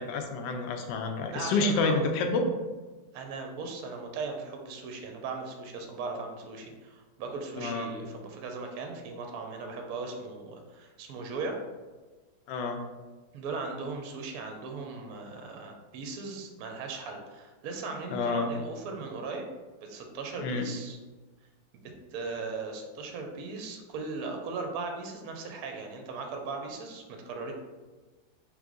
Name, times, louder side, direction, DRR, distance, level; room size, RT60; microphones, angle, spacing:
voice 1, 0.0-2.5 7.6-7.9 12.5-12.8 18.1-18.5 20.4-20.7, left 3 dB, 80° left, 5 dB, 1.2 m, -29 dB
voice 2, 1.3-2.1 3.1-11.6 13.3-19.5 19.8-21.0 21.8-27.5, right 4 dB, 70° right, 3 dB, 1.0 m, -38 dB
3.6 x 3.2 x 3.7 m, 1.3 s
omnidirectional pair, 1.9 m